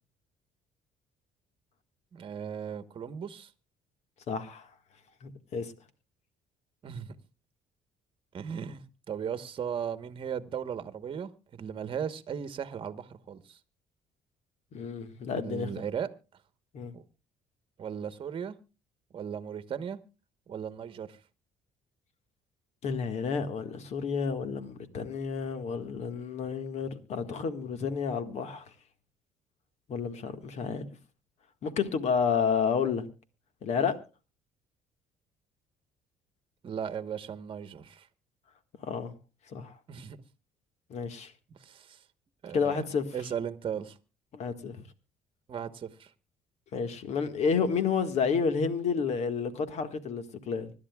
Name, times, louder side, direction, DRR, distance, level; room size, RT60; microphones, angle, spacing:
voice 1, 2.1-3.5 6.8-7.1 8.3-13.6 15.4-16.1 16.9-17.0 17.8-18.5 19.1-20.0 20.5-21.2 36.6-38.1 39.9-40.2 41.6-42.0 42.4-42.8 43.1-44.0 45.5-46.1, right 8 dB, 40° right, 1.2 m, -37 dB
voice 2, 4.3-4.7 5.2-5.7 14.7-15.7 16.7-16.9 22.8-28.7 29.9-30.9 31.6-33.1 33.6-33.9 38.8-39.1 39.5-39.7 40.9-41.3 42.5-43.1 44.3-44.8 46.7-50.7, left 6 dB, 60° left, 1.7 m, -30 dB
25.0 x 11.5 x 2.3 m
cardioid pair, 110°, 13 cm